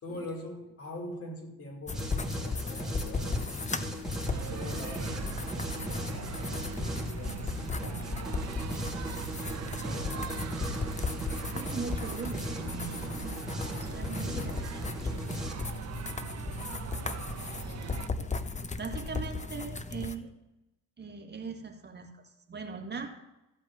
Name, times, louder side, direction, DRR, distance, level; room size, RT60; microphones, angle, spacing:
voice 1, 0.0-3.5 4.2-8.7 9.6-10.8 14.0-14.6 17.0-17.2 17.5-18.2, left 1 dB, 50° left, -1 dB, 4.9 m, -45 dB
sound 1, 1.9-20.1, left 4 dB, 25° left, 0.9 m, -36 dB
sound 2, 1.9-15.5, right 1 dB, ahead, 2.7 m, -39 dB
sound 3, 4.3-18.1, right 9 dB, 60° right, 0.9 m, -41 dB
voice 2, 11.5-15.4 17.6-17.9 18.2-18.4 18.6-20.3 21.0-23.1, right 5 dB, 35° right, 3 dB, 1.8 m, -41 dB
14.5 x 5.1 x 9.1 m, 0.95 s
cardioid pair, 90°, 30 cm